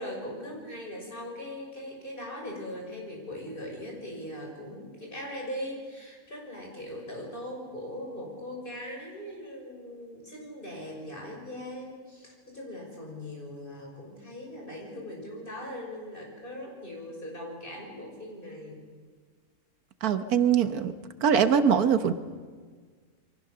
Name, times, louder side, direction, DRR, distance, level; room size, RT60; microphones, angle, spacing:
voice 1, 0.0-18.8, left 1 dB, 35° left, 0 dB, 6.6 m, -40 dB
voice 2, 20.0-20.9 21.2-22.1, right 7 dB, 85° right, 10 dB, 1.6 m, -22 dB
28.5 x 23.5 x 6.8 m, 1.5 s
omnidirectional pair, 1.5 m